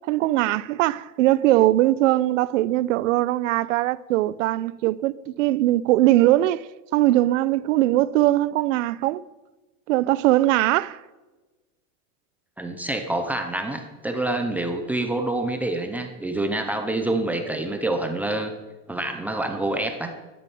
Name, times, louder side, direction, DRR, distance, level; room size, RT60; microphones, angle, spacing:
voice 1, 0.1-9.2 9.9-11.0, right 15 dB, 65° right, 0.8 m, -21 dB
voice 2, 12.6-18.5 18.9-20.1, right 2 dB, 5° right, 0.6 m, -27 dB
13.5 x 10.5 x 9.4 m
supercardioid pair, 180°, 41 cm